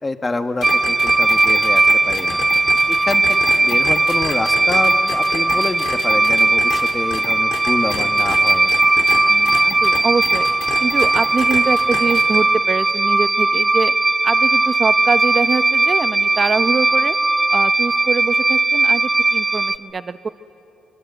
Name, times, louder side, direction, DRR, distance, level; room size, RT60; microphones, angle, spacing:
voice 1, 0.0-2.4 2.9-3.2 3.6-8.7, left 2 dB, 25° left, 8 dB, 1.3 m, -26 dB
sound 1, 0.6-9.2 9.5-12.4, left 6 dB, 85° left, 3.0 m, -30 dB
sound 2, 0.6-19.8, right 2 dB, 20° right, 0.6 m, -17 dB
voice 2, 9.3-10.5 10.8-13.9 14.2-17.2 17.5-20.3, right 4 dB, 40° right, 11 dB, 0.9 m, -24 dB
25.5 x 24.5 x 8.1 m, 2.8 s
cardioid pair, 90°, 0 cm